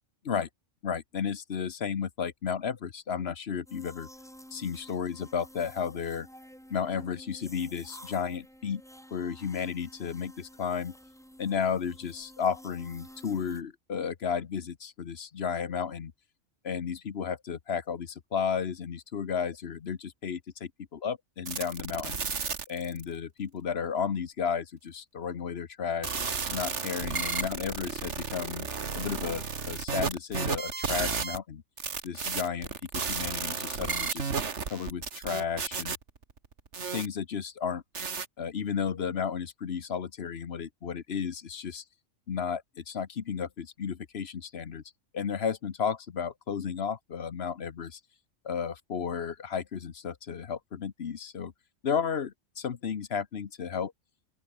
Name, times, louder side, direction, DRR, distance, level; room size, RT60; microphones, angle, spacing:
voice 1, 0.8-4.1 4.5-6.3 6.7-8.8 9.1-10.9 11.4-16.1 16.6-22.2 22.7-26.2 26.5-28.7 28.9-31.6 32.0-32.7 33.1-34.3 34.7-36.0 36.9-37.8 38.4-41.8 42.3-44.8 45.1-48.0 48.4-51.5 51.8-53.9, left 7 dB, 55° left, 1.2 m, -33 dB
sound 1, 3.7-13.6, equal, ahead, 2.9 m, -51 dB
sound 2, 21.5-23.0 26.0-31.4 31.8-37.1 38.0-38.3, right 5 dB, 60° right, 2.0 m, -33 dB
open air
omnidirectional pair, 1.3 m